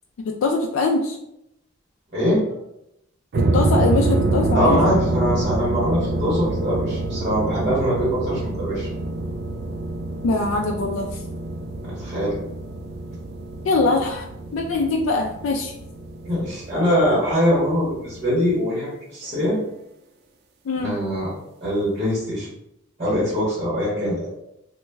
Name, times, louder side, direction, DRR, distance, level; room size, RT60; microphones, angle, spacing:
voice 1, 0.2-1.2 3.5-4.8 10.2-11.2 13.6-14.3 14.5-15.7 20.7-21.0, left 3 dB, 80° left, 1 dB, 0.3 m, -22 dB
sound 1, 3.3-18.5, right 2 dB, 55° right, 0.3 m, -26 dB
voice 2, 4.5-8.9 11.8-12.4 16.2-19.6 20.8-21.3 21.6-22.5 23.0-24.3, equal, 35° right, -9 dB, 1.3 m, -22 dB
3.1 x 2.2 x 3.3 m, 0.83 s
head